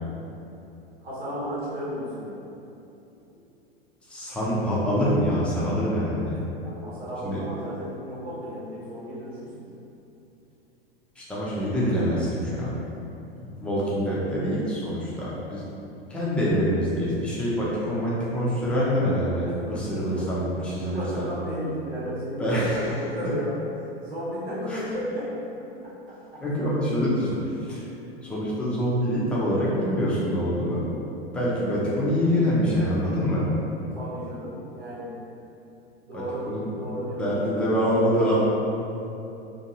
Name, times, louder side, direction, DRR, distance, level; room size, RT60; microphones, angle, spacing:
voice 1, 1.0-2.4 6.6-9.7 20.1-20.4 20.8-23.5 24.0-25.3 25.6-25.9 26.3-26.4 33.9-35.1 36.1-37.2 38.0-38.3, equal, 80° right, -9 dB, 1.0 m, -34 dB
voice 2, 4.1-6.4 7.2-7.4 11.2-12.8 13.4-15.6 16.1-21.3 22.4-23.0 24.7-24.8 26.4-27.8 28.2-30.8 31.3-33.4 36.1-36.7 37.2-38.4, equal, 5° left, -8 dB, 0.5 m, -25 dB
2.7 x 2.5 x 2.8 m, 2.9 s
figure-of-eight pair, 95°, 31 cm